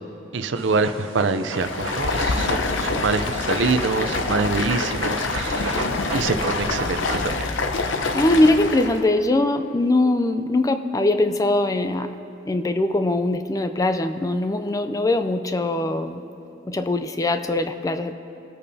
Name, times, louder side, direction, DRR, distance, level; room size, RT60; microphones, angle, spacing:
voice 1, 0.3-7.2, right 4 dB, 65° right, 10 dB, 0.5 m, -25 dB
Dog, 0.5-7.3, right 3 dB, 85° right, 0.9 m, -35 dB
Stream, 1.5-9.0, left 3 dB, 65° left, 0.8 m, -26 dB
voice 2, 8.1-12.1 12.5-16.2 16.7-18.1, left 2 dB, 15° left, 9 dB, 0.4 m, -21 dB
24.0 x 8.5 x 2.7 m, 3.0 s
head